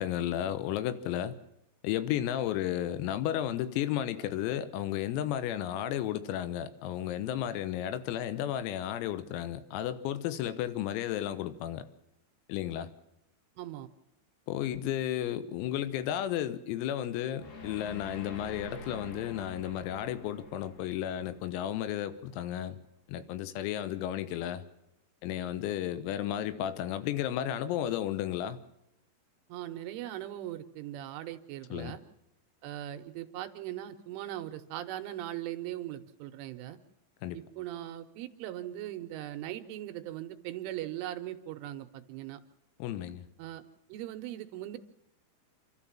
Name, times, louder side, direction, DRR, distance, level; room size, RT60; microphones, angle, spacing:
voice 1, 0.0-1.4 1.8-11.8 12.5-12.9 14.5-22.8 23.1-24.6 25.2-28.6 31.7-32.0 37.2-37.4 42.8-43.3, left 11 dB, 90° left, 12 dB, 3.8 m, -33 dB
voice 2, 13.6-13.9 29.5-32.0 32.6-36.8 37.3-42.4 43.4-43.6 43.9-44.8, right 13 dB, 75° right, 8 dB, 3.2 m, -39 dB
sound 1, 17.4-22.5, left 2 dB, 55° left, 3.9 m, -47 dB
28.0 x 13.0 x 7.3 m, 0.87 s
omnidirectional pair, 6.0 m